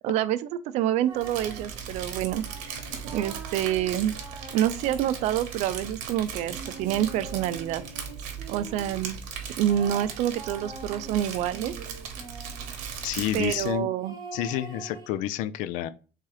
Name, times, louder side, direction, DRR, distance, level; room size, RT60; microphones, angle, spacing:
voice 1, 0.0-0.4 0.7-2.7 3.1-4.1 4.5-7.8 8.5-9.2 9.6-11.7 13.3-14.2, right 11 dB, 55° right, 0.4 m, -27 dB
sound 1, 1.0-1.7 2.4-5.6 6.5-9.0 9.7-12.7 14.0-15.1, right 4 dB, 30° right, 0.9 m, -44 dB
Crumpling crinkling, 1.2-13.8, right 7 dB, 75° right, 1.1 m, -38 dB
voice 2, 13.0-13.9 14.3-15.9, left 12 dB, 70° left, 0.4 m, -29 dB
3.7 x 2.9 x 4.7 m
cardioid pair, 170°, 14 cm